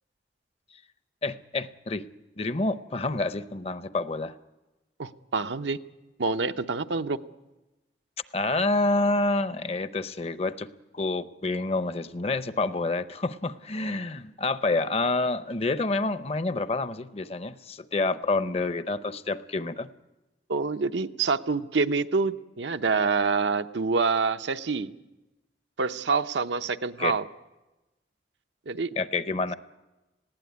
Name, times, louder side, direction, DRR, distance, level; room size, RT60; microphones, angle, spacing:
voice 1, 1.2-2.0 2.4-4.3 8.3-10.7 10.9-19.9 27.0-27.1 29.0-29.5, left 2 dB, 35° left, 13 dB, 0.7 m, -28 dB
voice 2, 5.0-5.8 6.2-7.2 20.5-24.9 25.8-27.3 28.7-28.9, right 4 dB, 90° right, 9 dB, 0.7 m, -26 dB
19.5 x 16.0 x 9.3 m, 1.1 s
head